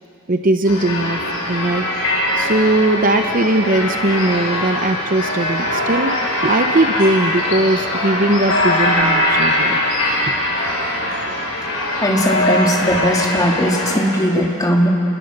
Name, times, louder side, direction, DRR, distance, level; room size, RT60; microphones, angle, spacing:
voice 1, 0.3-1.2 1.5-1.8 2.3-9.8 10.2-10.3, right 2 dB, 40° right, 6 dB, 0.9 m, -19 dB
sound 1, 0.6-14.0, left 1 dB, 65° left, 6.0 m, -21 dB
voice 2, 12.0-14.9, equal, 15° left, -1 dB, 2.7 m, -18 dB
29.5 x 21.5 x 6.7 m, 2.7 s
head